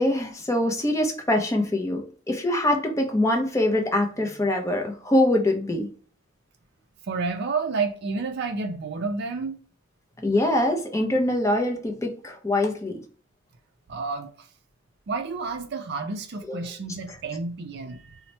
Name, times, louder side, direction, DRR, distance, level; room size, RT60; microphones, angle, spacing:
voice 1, 0.0-5.9 10.2-13.0 16.5-16.6, left 1 dB, 15° left, 0.5 m, -24 dB
voice 2, 7.1-9.6 13.9-14.3 15.1-18.2, right 4 dB, 55° right, 0.4 m, -30 dB
2.9 x 2.1 x 4.1 m
head